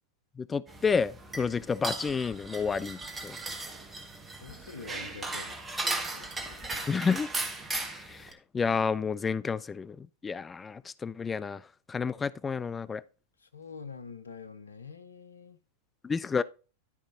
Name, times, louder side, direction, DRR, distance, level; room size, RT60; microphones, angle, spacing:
voice 1, 0.4-3.4 6.9-7.3 7.9-13.0 16.0-16.4, left 5 dB, 20° left, 0.3 m, -30 dB
sound 1, 0.7-8.3, right 2 dB, 15° right, 1.4 m, -37 dB
voice 2, 4.4-6.7 13.4-15.6, left 5 dB, 80° left, 0.8 m, -46 dB
11.5 x 5.0 x 3.8 m
figure-of-eight pair, 90°, 0 cm